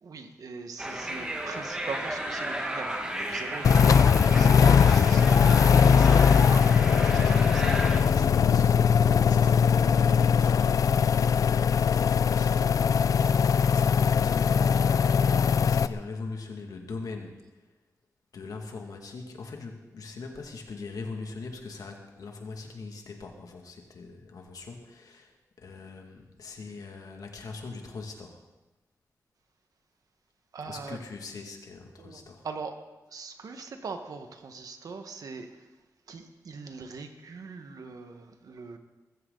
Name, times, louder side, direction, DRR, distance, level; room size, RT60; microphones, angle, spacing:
voice 1, 0.0-8.0 30.5-31.0 32.0-32.7 33.1-35.5 36.1-38.8, right 4 dB, 80° right, 6 dB, 1.6 m, -41 dB
sound 1, 0.8-8.0, right 1 dB, 15° right, 1.9 m, -34 dB
sound 2, 3.6-15.9, left 7 dB, 70° left, 0.5 m, -21 dB
voice 2, 6.9-12.7 13.1-17.6 18.3-28.4 30.7-32.5, left 4 dB, 90° left, 2 dB, 2.3 m, -41 dB
22.0 x 14.5 x 4.1 m, 1.1 s
wide cardioid pair, 145°, 6 cm